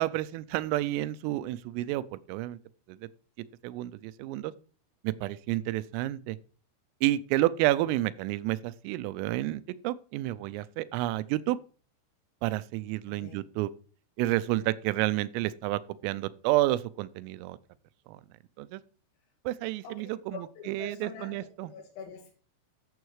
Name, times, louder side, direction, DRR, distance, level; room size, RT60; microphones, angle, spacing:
voice 1, 0.0-2.6 2.9-3.0 3.6-4.5 5.0-6.4 7.0-11.6 12.4-13.7 14.2-17.6 18.1-18.2 18.6-18.8 19.5-21.7, right 16 dB, 85° right, 3.3 m, -30 dB
voice 2, 13.1-13.4 19.8-20.0 20.3-22.3, left 5 dB, 85° left, 4.5 m, -45 dB
14.0 x 7.3 x 4.8 m
omnidirectional pair, 5.8 m